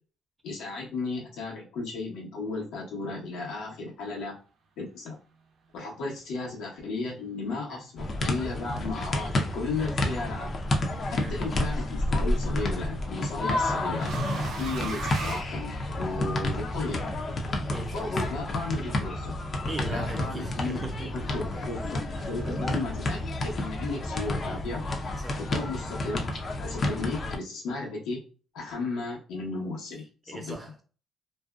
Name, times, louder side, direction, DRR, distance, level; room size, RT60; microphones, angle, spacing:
voice 1, 0.4-4.3 4.8-5.2 5.7-10.5 11.1-14.1 14.6-17.0 17.9-19.4 19.9-20.8 21.1-24.8 25.4-26.2 26.6-28.2 28.5-30.5, left 3 dB, 90° left, 1.1 m, -34 dB
sound 1, 8.0-27.4, left 1 dB, 45° left, 0.6 m, -30 dB
sound 2, 10.6-10.8 12.3-16.3, right 4 dB, 75° right, 0.5 m, -39 dB
voice 2, 11.1-11.4 17.7-18.2 19.7-21.1 25.2-25.4 30.3-30.8, right 2 dB, 25° right, 0.7 m, -38 dB
2.5 x 2.2 x 2.3 m
cardioid pair, 90°, 0 cm